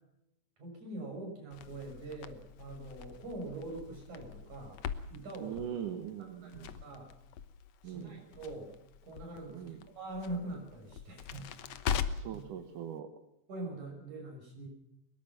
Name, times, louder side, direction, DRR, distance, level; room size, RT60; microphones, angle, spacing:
voice 1, 0.6-4.8 5.1-5.7 6.4-7.1 7.8-8.8 9.0-12.0 12.3-12.4 13.5-14.7, right 2 dB, 70° right, 1 dB, 8.1 m, -43 dB
Crackle, 1.5-12.4, left 8 dB, 65° left, 1.9 m, -42 dB
voice 2, 5.4-6.8 7.8-8.2 9.5-9.8 12.1-13.1, right 9 dB, 85° right, 8 dB, 3.0 m, -41 dB
23.0 x 21.0 x 6.1 m, 0.80 s
omnidirectional pair, 3.5 m